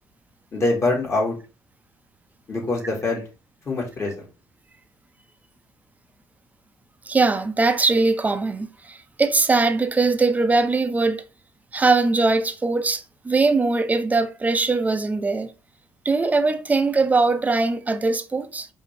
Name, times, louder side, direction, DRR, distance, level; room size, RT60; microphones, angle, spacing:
voice 1, 0.5-1.4 2.5-3.2 3.7-4.2, left 2 dB, 35° left, 2.1 m, -24 dB
voice 2, 7.1-11.3 11.7-15.5 16.0-18.7, right 3 dB, 20° right, 0.6 m, -21 dB
4.9 x 2.7 x 3.3 m
cardioid pair, 100°, 8 cm